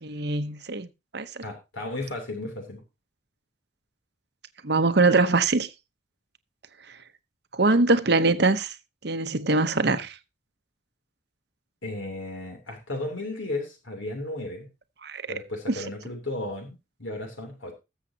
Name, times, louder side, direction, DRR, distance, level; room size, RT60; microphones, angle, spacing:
voice 1, 0.0-1.3 4.6-5.7 7.5-8.7 9.0-10.1 15.0-15.4, right 3 dB, 55° right, 0.9 m, -23 dB
voice 2, 1.4-2.8 11.8-14.7 15.3-17.7, left 2 dB, 80° left, 3.2 m, -34 dB
20.5 x 7.4 x 2.9 m
head